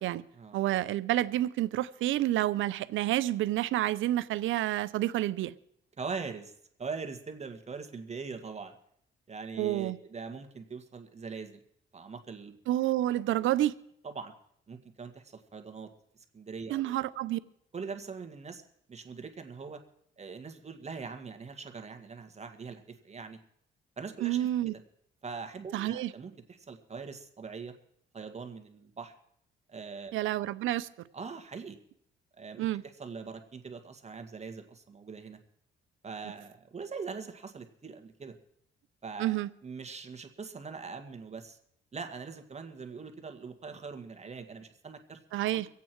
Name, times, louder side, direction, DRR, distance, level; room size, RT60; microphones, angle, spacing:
voice 1, 0.5-5.5 9.6-10.0 12.7-13.8 16.7-17.4 24.2-24.7 25.7-26.1 30.1-30.9 32.6-32.8 39.2-39.5 45.3-45.7, right 14 dB, 80° right, 0.6 m, -29 dB
voice 2, 6.0-6.5 6.8-8.7 9.3-11.6 11.9-12.6 13.1-13.2 14.0-14.3 14.7-17.0 17.7-18.6 18.9-19.8 20.2-23.4 24.0-24.8 25.2-27.7 28.1-29.1 29.7-30.1 31.1-31.8 32.4-35.4 36.0-38.4 39.0-39.4 39.6-41.6 41.9-45.2 45.5-45.6, right 5 dB, 35° right, 1.6 m, -42 dB
24.5 x 8.5 x 4.6 m
cardioid pair, 90°, 20 cm